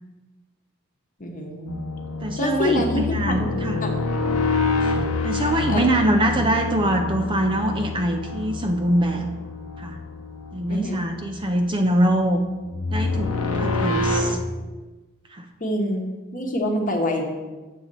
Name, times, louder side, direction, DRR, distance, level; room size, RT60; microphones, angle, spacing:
voice 1, 1.2-1.7 2.4-3.5 3.8-4.0 5.7-5.8 10.7-11.2 15.6-17.3, left 1 dB, 35° left, 2 dB, 1.1 m, -26 dB
sound 1, 1.7-14.3, left 3 dB, 85° left, 0.8 m, -27 dB
voice 2, 2.2-3.8 5.2-9.3 9.8-10.0 10.5-12.4 12.9-13.3 13.6-14.4 15.3-15.4, right 1 dB, 20° right, 5 dB, 0.4 m, -23 dB
7.2 x 4.2 x 6.7 m, 1.2 s
head